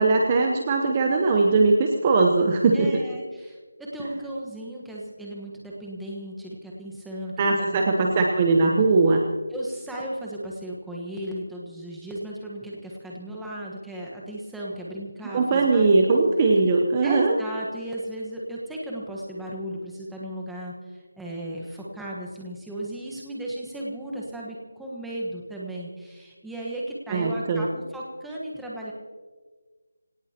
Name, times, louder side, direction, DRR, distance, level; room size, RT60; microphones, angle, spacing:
voice 1, 0.0-2.9 7.4-9.2 15.3-17.4 27.1-27.7, right 3 dB, 20° right, 2 dB, 0.9 m, -20 dB
voice 2, 2.7-8.2 9.5-16.1 17.0-28.9, right 1 dB, ahead, -5 dB, 1.3 m, -35 dB
25.5 x 18.0 x 2.9 m, 1.5 s
figure-of-eight pair, 170°, 0 cm